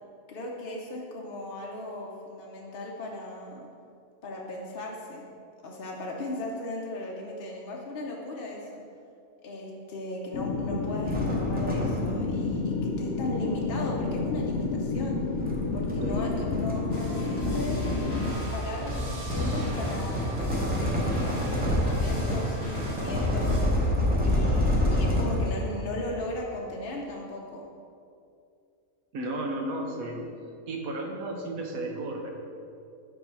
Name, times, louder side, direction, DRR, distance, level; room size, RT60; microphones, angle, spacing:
voice 1, 0.3-3.7 4.2-5.3 5.6-8.8 9.4-15.2 15.7-17.9 18.5-23.9 24.2-27.7, left 1 dB, 50° left, -2 dB, 0.8 m, -37 dB
sound 1, 10.3-18.3, left 3 dB, 75° left, 1.0 m, -30 dB
sound 2, 11.1-12.4 13.6-25.8, left 1 dB, 10° right, 0.7 m, -28 dB
sound 3, 16.9-23.6, right 1 dB, 45° right, 1.9 m, -36 dB
voice 2, 29.1-30.3 30.7-32.3, right 1 dB, 75° right, 2 dB, 1.3 m, -33 dB
5.6 x 4.6 x 5.6 m, 2.5 s
omnidirectional pair, 1.5 m